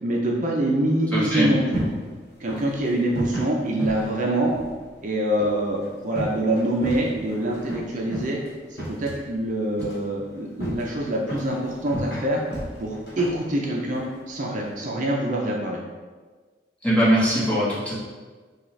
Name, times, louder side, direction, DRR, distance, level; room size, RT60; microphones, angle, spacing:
voice 1, 0.0-1.8 2.4-4.5 5.0-8.4 8.7-12.4 12.8-15.8, right 1 dB, 45° right, -1 dB, 0.5 m, -25 dB
voice 2, 1.1-1.5 16.8-17.9, equal, 10° left, -8 dB, 1.2 m, -21 dB
sound 1, 1.3-14.8, equal, 60° left, 1.1 m, -36 dB
6.3 x 2.4 x 3.2 m, 1.4 s
head